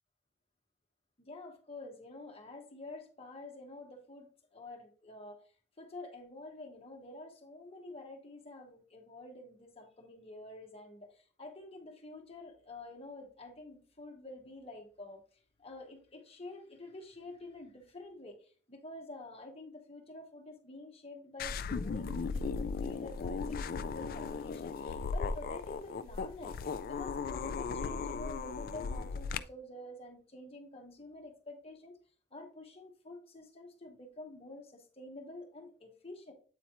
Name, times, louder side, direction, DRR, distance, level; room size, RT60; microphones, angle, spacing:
voice 1, 1.2-5.4 5.8-15.2 15.6-26.6 26.9-32.0 32.3-36.3, left 2 dB, 30° left, 1.3 m, -48 dB
sound 1, 21.4-29.4, left 5 dB, 50° left, 0.3 m, -37 dB
8.4 x 4.2 x 3.0 m
head